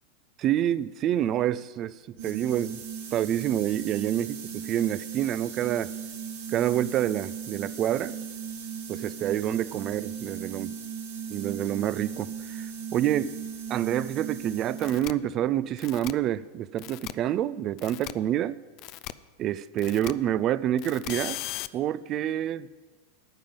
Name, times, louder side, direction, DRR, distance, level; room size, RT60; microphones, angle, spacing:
voice 1, 0.4-2.8 3.1-5.9 6.5-8.1 8.9-10.7 11.3-12.7 12.9-13.3 13.7-18.6 19.4-21.4 21.7-22.7, right 11 dB, 40° right, 17 dB, 0.4 m, -27 dB
sound 1, 2.2-15.1, right 7 dB, 80° right, 2.9 m, -37 dB
sound 2, 14.8-15.1 15.8-16.1 16.8-17.1 17.8-18.1 18.8-19.1 19.8-20.1 20.8-21.7, left 16 dB, 50° left, 0.4 m, -37 dB
10.0 x 9.0 x 5.3 m, 1.3 s
hypercardioid pair, 100°, 0 cm